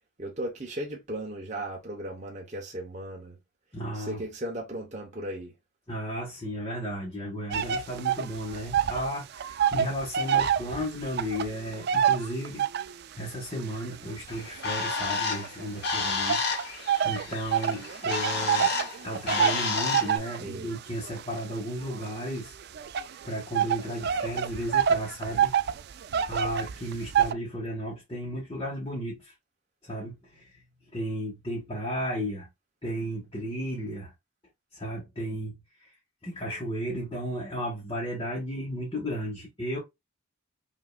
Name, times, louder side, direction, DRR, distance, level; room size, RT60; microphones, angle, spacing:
voice 1, 0.2-3.4 3.9-5.5 20.4-20.7, right 1 dB, 35° right, 0.9 m, -36 dB
voice 2, 3.7-4.2 5.9-12.7 13.1-18.8 19.0-22.6 23.2-25.6 26.2-29.3 29.8-30.6 30.9-32.5 32.8-34.1 34.7-35.6 36.2-39.8, equal, 20° left, 1.3 m, -34 dB
sound 1, 7.5-9.1 9.3-13.0 13.6-15.7 16.3-27.3, right 8 dB, 50° right, 0.3 m, -27 dB
Bird, 14.3-20.2, left 4 dB, 50° left, 1.1 m, -31 dB
5.5 x 2.8 x 2.3 m
head